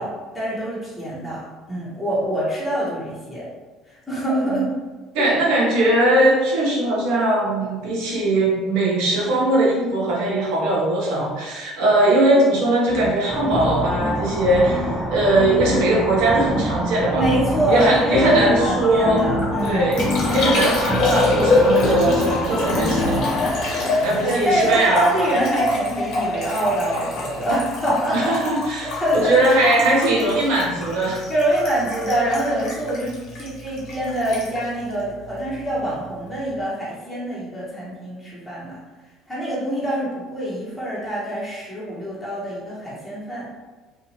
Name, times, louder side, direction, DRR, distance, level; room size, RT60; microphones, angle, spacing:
voice 1, 0.0-3.4 3.9-4.7 5.2-5.3 17.1-20.0 24.2-28.4 28.7-30.0 31.3-38.8 39.3-43.5, right 1 dB, 10° left, -8 dB, 1.0 m, -25 dB
voice 2, 5.1-17.3 17.7-19.3 19.6-20.0 20.3-25.3 28.1-31.3, right 1 dB, 75° right, -3 dB, 0.9 m, -20 dB
sound 1, 12.9-13.1 13.5-14.9 15.4-15.8 16.3-16.8 17.2-23.5, left 2 dB, 40° left, 0.4 m, -26 dB
sound 2, 13.3-23.6, right 1 dB, 10° right, 0.5 m, -29 dB
Liquid, 19.2-35.8 36.1-36.6, left 2 dB, 60° left, 1.1 m, -26 dB
2.7 x 2.4 x 2.8 m, 1.3 s
hypercardioid pair, 75°, 0 cm